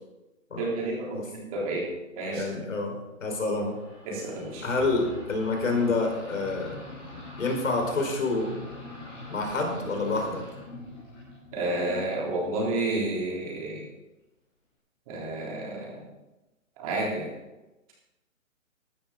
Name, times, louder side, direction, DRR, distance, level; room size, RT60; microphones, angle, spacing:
voice 1, 0.6-1.9 2.1-2.4 4.1-4.6 11.5-13.9 15.1-16.0 16.8-17.3, right 2 dB, 25° right, -3 dB, 3.8 m, -30 dB
voice 2, 2.3-3.7 4.6-6.8 7.4-8.6 9.3-10.4, left 3 dB, 70° left, 2 dB, 4.7 m, -28 dB
sound 1, 3.6-13.0, left 2 dB, 10° left, 6.0 m, -43 dB
15.0 x 12.5 x 3.9 m, 1.0 s
hypercardioid pair, 165°, 41 cm